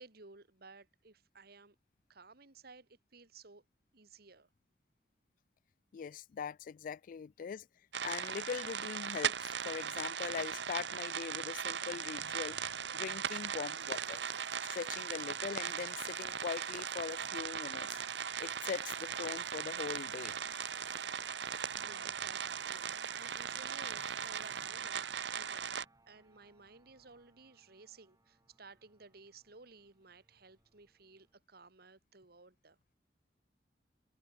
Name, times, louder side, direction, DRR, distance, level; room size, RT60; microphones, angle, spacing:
voice 1, 0.0-1.8 2.1-3.6 3.9-4.5 21.2-32.8, right 4 dB, 60° right, 2.2 m, -57 dB
voice 2, 5.9-7.7 8.0-14.2 14.6-17.9 18.4-20.4, left 6 dB, 50° left, 0.3 m, -41 dB
sound 1, 7.9-25.8, right 7 dB, 75° right, 1.1 m, -38 dB
sound 2, 13.8-31.4, right 3 dB, 20° right, 5.5 m, -62 dB
head